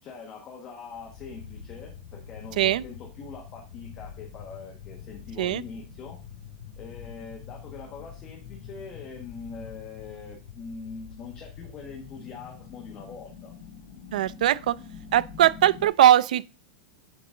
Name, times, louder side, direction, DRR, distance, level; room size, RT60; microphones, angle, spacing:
voice 1, 0.0-6.2 6.8-13.5, left 5 dB, 20° left, 1.2 m, -43 dB
sound 1, 0.9-15.9, left 7 dB, 65° left, 2.4 m, -45 dB
voice 2, 14.1-14.8 15.1-16.5, right 12 dB, 80° right, 0.4 m, -20 dB
10.0 x 3.9 x 3.7 m
supercardioid pair, 180°, 4 cm